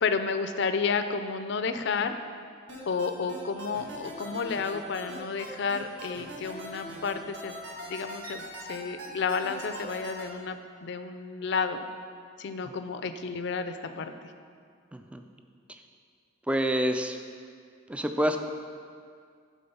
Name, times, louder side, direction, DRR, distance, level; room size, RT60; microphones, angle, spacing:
voice 1, 0.0-2.2 2.8-7.6 7.9-11.8 12.4-14.1, left 5 dB, 60° left, 9 dB, 0.4 m, -31 dB
sound 1, 2.7-10.2, right 1 dB, 65° right, 1.5 m, -41 dB
voice 2, 14.9-15.2 15.7-15.8 16.5-17.2 17.9-18.4, equal, 5° right, 6 dB, 0.3 m, -27 dB
10.5 x 3.7 x 5.5 m, 2.2 s
head